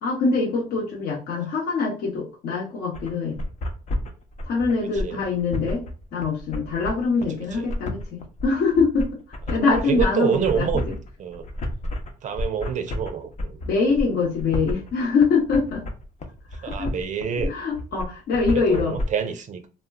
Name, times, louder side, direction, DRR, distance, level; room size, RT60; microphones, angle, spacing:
voice 1, 0.0-3.4 4.4-5.8 6.1-9.1 9.5-10.7 13.6-15.8 16.6-16.9 17.4-19.0, left 4 dB, 70° left, 1.0 m, -24 dB
sound 1, 2.9-19.0, left 1 dB, 45° left, 0.7 m, -30 dB
voice 2, 9.7-10.9 11.2-11.5 12.2-13.6 16.6-17.5 18.5-19.6, right 7 dB, 45° right, 0.4 m, -27 dB
2.1 x 2.1 x 3.5 m
cardioid pair, 110°, 17 cm